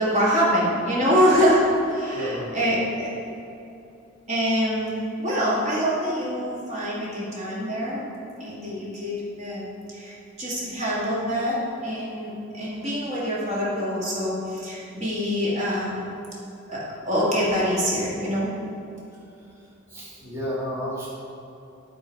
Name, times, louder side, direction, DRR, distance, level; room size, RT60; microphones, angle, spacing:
voice 1, 0.0-3.1 4.3-8.0 8.4-9.7 9.9-11.6 11.8-16.1 16.7-18.5, equal, 35° right, -7 dB, 1.8 m, -25 dB
voice 2, 2.1-2.4 19.9-21.1, equal, 15° right, -6 dB, 1.5 m, -31 dB
11.0 x 3.8 x 4.6 m, 2.8 s
head